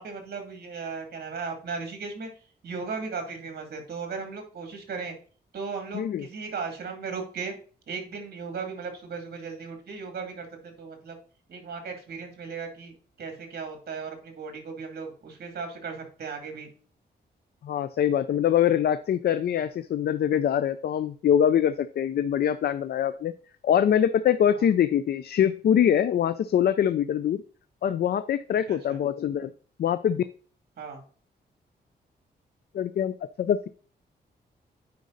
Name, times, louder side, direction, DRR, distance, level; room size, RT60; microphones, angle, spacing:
voice 1, 0.0-2.3 2.6-5.2 5.5-7.5 7.9-11.2 11.5-16.7 24.6-24.7 28.7-29.0 30.8-31.0, right 5 dB, 60° right, 5 dB, 2.6 m, -36 dB
voice 2, 5.9-6.3 17.6-23.3 23.6-27.4 27.8-29.5 29.8-30.2 32.7-33.7, left 9 dB, 65° left, 12 dB, 0.5 m, -24 dB
9.5 x 5.2 x 3.9 m, 0.42 s
wide cardioid pair, 125°, 18 cm